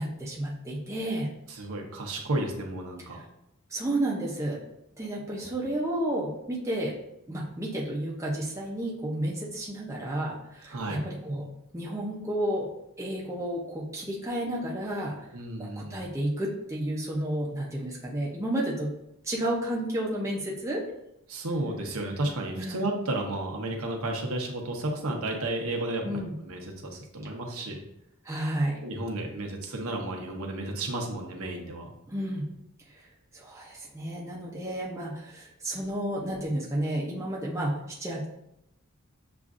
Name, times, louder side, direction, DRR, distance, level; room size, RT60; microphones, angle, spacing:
voice 1, 0.0-1.3 3.1-3.2 3.7-4.6 5.0-6.9 7.3-11.4 11.7-12.7 13.0-15.3 15.6-18.9 19.2-20.8 22.6-22.8 26.0-26.3 28.2-28.8 32.1-32.5 32.9-33.0 33.3-38.4, right 1 dB, 15° right, -4 dB, 0.6 m, -31 dB
voice 2, 1.5-3.2 10.7-11.0 15.3-16.0 21.3-26.0 26.4-27.8 28.8-31.9, right 2 dB, 75° right, 2 dB, 0.8 m, -32 dB
6.9 x 2.5 x 2.4 m, 0.84 s
head